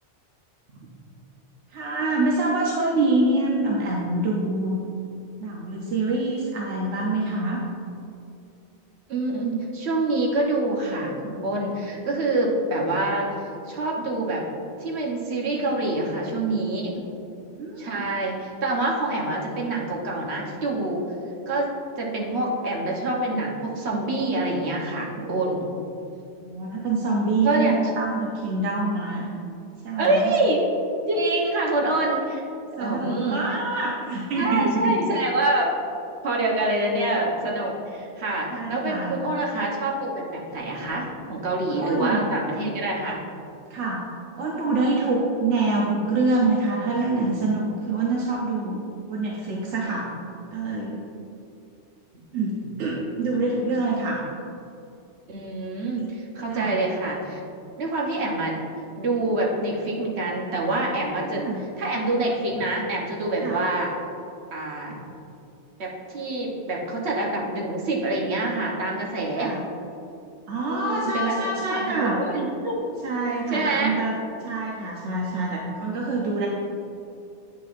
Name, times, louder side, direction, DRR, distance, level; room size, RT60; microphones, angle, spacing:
voice 1, 1.7-4.8 5.4-7.6 17.5-18.0 26.4-29.3 29.8-30.3 32.8-35.0 38.5-39.2 41.7-42.2 43.7-44.1 44.4-50.1 50.5-51.0 52.3-54.2 56.5-56.7 61.2-61.6 63.4-63.6 69.4-69.6 70.5-72.2 73.0-74.1 74.4-76.5, right 2 dB, 85° right, -3 dB, 1.1 m, -25 dB
voice 2, 9.1-13.3 13.7-14.5 14.8-17.0 17.8-21.0 21.5-21.7 22.0-25.6 27.4-27.8 30.0-30.6 31.1-32.4 32.7-33.4 34.4-35.7 36.2-43.2 53.4-53.7 55.3-57.4 57.8-58.6 59.0-61.4 61.8-63.9 64.5-65.0 65.8-69.5 70.7-72.9 73.5-73.9, right 2 dB, 70° right, -2 dB, 1.3 m, -26 dB
9.0 x 5.8 x 2.5 m, 2.7 s
omnidirectional pair, 1.2 m